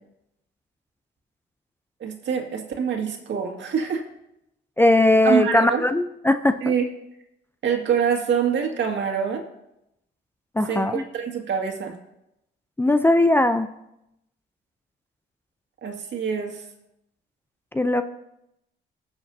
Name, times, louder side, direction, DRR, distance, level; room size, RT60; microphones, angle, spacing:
voice 1, 2.0-4.0 5.2-5.8 6.6-6.9 7.6-9.5 10.7-11.9 15.8-16.6, right 7 dB, 65° right, 2 dB, 2.0 m, -25 dB
voice 2, 4.8-6.7 10.6-11.0 12.8-13.7 17.7-18.0, left 1 dB, 10° left, 9 dB, 0.5 m, -19 dB
20.0 x 7.1 x 2.7 m, 0.84 s
cardioid pair, 90°, 20 cm